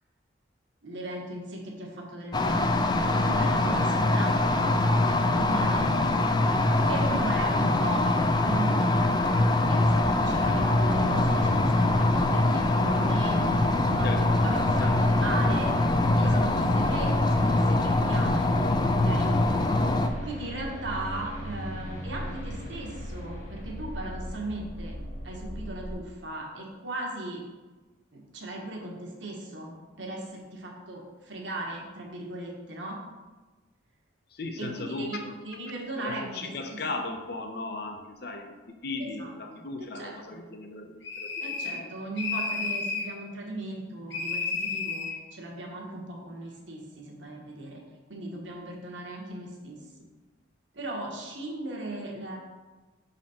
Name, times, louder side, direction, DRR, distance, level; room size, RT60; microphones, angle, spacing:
voice 1, 0.8-2.7 3.2-4.4 4.8-5.9 6.9-8.1 8.4-13.4 13.9-14.1 14.4-15.8 16.1-18.5 19.0-19.3 20.2-24.9 25.2-27.4 28.1-33.0 34.6-35.2 35.4-36.8 39.0-39.6 39.9-40.5 41.4-47.8 48.1-49.8 50.7-52.4, right 2 dB, 75° right, -1 dB, 1.4 m, -37 dB
sound 1, 2.3-20.1, left 2 dB, 20° left, 0.3 m, -23 dB
sound 2, 9.8-25.9, equal, 40° left, 1.5 m, -37 dB
voice 2, 14.0-14.5 14.8-15.2 16.3-16.4 34.3-35.4 36.0-38.5 38.8-41.9, left 3 dB, 55° left, 4 dB, 0.7 m, -37 dB
sound 3, 41.0-41.9 42.2-43.1 44.1-45.2, left 4 dB, 70° left, 1.1 m, -31 dB
6.4 x 4.1 x 4.3 m, 1.2 s
head